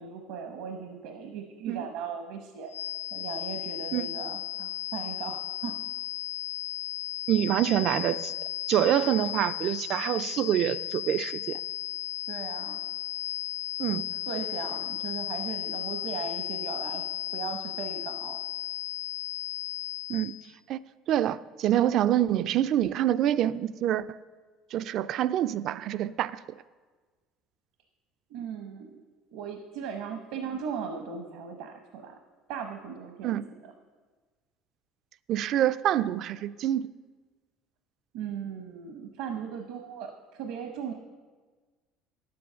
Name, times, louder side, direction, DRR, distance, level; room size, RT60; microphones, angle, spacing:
voice 1, 0.0-2.7 3.1-5.8 12.3-12.8 13.9-14.0 14.3-17.0 17.3-18.4 28.3-29.0 29.3-32.1 32.5-33.7 38.1-40.9, right 7 dB, 75° right, 5 dB, 0.9 m, -38 dB
sound 1, 2.7-20.4, left 12 dB, 80° left, 0.6 m, -35 dB
voice 2, 7.3-8.3 8.7-11.6 13.8-14.0 20.1-20.3 20.7-20.8 21.1-24.2 24.7-26.4 33.2-33.4 35.3-36.9, right 12 dB, 45° right, 16 dB, 0.3 m, -26 dB
10.0 x 7.7 x 6.8 m, 1.4 s
cardioid pair, 160°, 0 cm